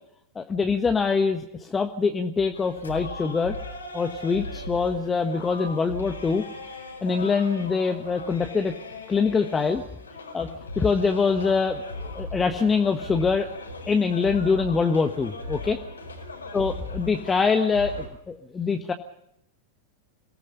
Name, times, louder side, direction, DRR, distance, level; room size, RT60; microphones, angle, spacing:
voice 1, 0.3-3.6 3.9-6.5 7.0-8.7 9.1-9.8 10.3-10.5 10.8-13.5 13.9-15.8 16.5-18.9, left 5 dB, 15° left, 6 dB, 1.4 m, -24 dB
sound 1, 2.5-18.1, left 2 dB, 75° left, 4.8 m, -38 dB
27.5 x 18.0 x 5.4 m, 0.77 s
figure-of-eight pair, 90°, 0 cm